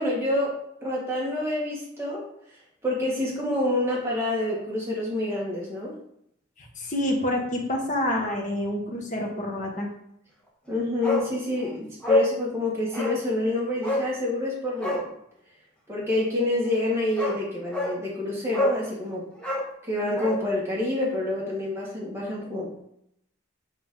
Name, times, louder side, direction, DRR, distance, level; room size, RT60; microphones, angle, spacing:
voice 1, 0.0-2.2 2.8-5.9 10.7-15.1 15.9-19.2 19.9-22.7, left 2 dB, 15° right, -6 dB, 2.0 m, -27 dB
voice 2, 6.6-9.9, left 1 dB, 40° left, -1 dB, 1.5 m, -28 dB
Bark, 11.0-11.3 11.6-11.7 12.0-12.3 12.9-13.2 13.8-14.1 14.7-15.1 16.7-16.8 17.2-17.4 17.7-18.0 18.5-18.8 19.4-20.4 20.7-20.8, left 1 dB, 5° left, 1.4 m, -26 dB
7.5 x 4.5 x 3.9 m, 0.74 s
head